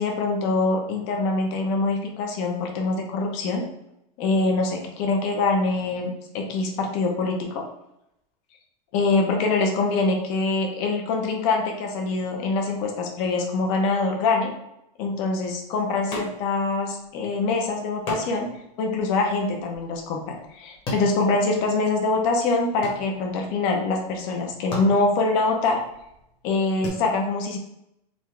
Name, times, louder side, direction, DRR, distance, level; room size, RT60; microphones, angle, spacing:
voice 1, 0.0-3.7 4.2-7.6 8.9-14.5 15.0-18.5 18.8-25.8 26.4-27.6, left 3 dB, 45° left, 2 dB, 0.8 m, -24 dB
sound 1, 16.1-16.7 17.0-17.1 18.1-22.0 22.3-23.5 24.2-24.3 24.6-26.9, left 1 dB, 25° left, 1.1 m, -37 dB
3.9 x 2.3 x 3.2 m, 0.82 s
supercardioid pair, 165°, 20 cm